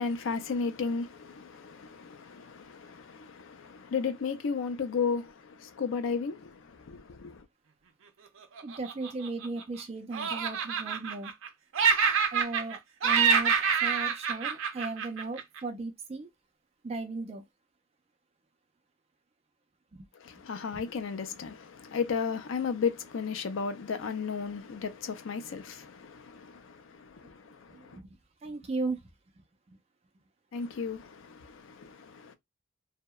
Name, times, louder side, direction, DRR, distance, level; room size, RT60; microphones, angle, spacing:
voice 1, 0.0-7.4 20.2-28.0 30.5-32.3, left 5 dB, 80° left, 0.4 m, -34 dB
voice 2, 8.6-11.3 12.3-16.3 16.8-17.4 19.9-20.1 20.7-20.8 27.5-28.1 28.4-29.1 29.4-29.8, right 3 dB, 30° right, 0.4 m, -37 dB
Laughter, 8.6-9.8 10.1-11.5 11.7-12.8 13.0-15.6, right 6 dB, 90° right, 0.5 m, -27 dB
2.7 x 2.1 x 2.2 m
head